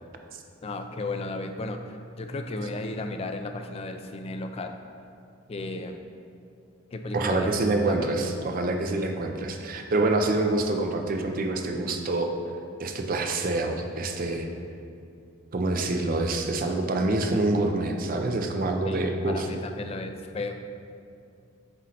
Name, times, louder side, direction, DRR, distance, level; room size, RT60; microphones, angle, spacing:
voice 1, 0.6-4.8 5.5-6.1 6.9-8.2 18.9-20.5, left 2 dB, 30° left, 6 dB, 0.3 m, -34 dB
voice 2, 7.1-12.3 12.8-14.5 15.5-19.5, right 2 dB, 45° right, 4 dB, 0.5 m, -26 dB
7.7 x 3.1 x 4.2 m, 2.5 s
head